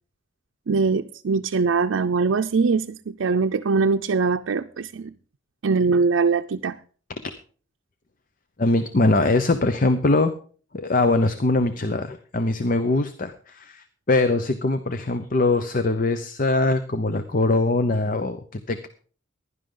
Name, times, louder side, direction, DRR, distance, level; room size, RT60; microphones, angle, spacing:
voice 1, 0.7-5.1 5.6-6.8, right 4 dB, 85° right, 0.5 m, -22 dB
voice 2, 8.6-10.3 10.7-18.9, left 2 dB, 45° left, 0.8 m, -22 dB
15.5 x 11.0 x 3.9 m
head